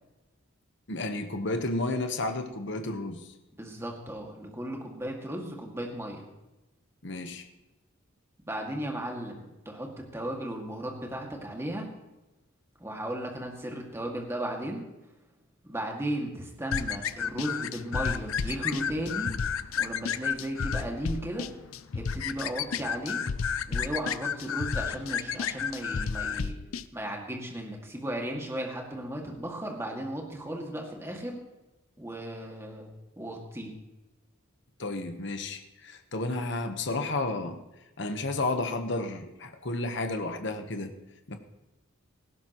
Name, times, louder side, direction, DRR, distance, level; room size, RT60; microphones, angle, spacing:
voice 1, 0.9-3.3 7.0-7.5 34.8-37.6 38.0-40.9 41.3-41.4, left 2 dB, 55° left, 6 dB, 1.2 m, -32 dB
voice 2, 3.5-6.3 8.5-11.9 12.8-14.9 15.6-19.3 19.8-21.5 21.9-23.2 23.7-26.6 26.9-31.4 32.0-32.9 33.2-33.7, right 1 dB, 15° right, 0 dB, 2.1 m, -35 dB
sound 1, 16.7-26.8, left 7 dB, 80° left, 0.5 m, -31 dB
18.5 x 15.5 x 3.1 m, 1.0 s
head